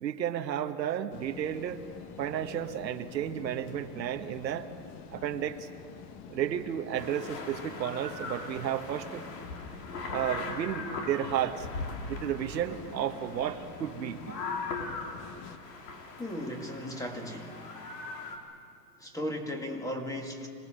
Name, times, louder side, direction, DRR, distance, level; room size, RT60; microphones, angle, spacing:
voice 1, 0.0-1.8 2.2-4.7 5.1-5.7 6.3-9.3 10.1-11.7 12.1-14.4, right 10 dB, 85° right, 7 dB, 1.5 m, -32 dB
sound 1, 1.1-15.6, left 7 dB, 35° left, 1.4 m, -47 dB
sound 2, 6.9-18.4, left 3 dB, 80° left, 3.6 m, -40 dB
voice 2, 16.2-17.7 19.0-20.5, equal, 5° left, 3 dB, 2.0 m, -36 dB
26.5 x 19.0 x 7.8 m, 2.3 s
hypercardioid pair, 135°, 50 cm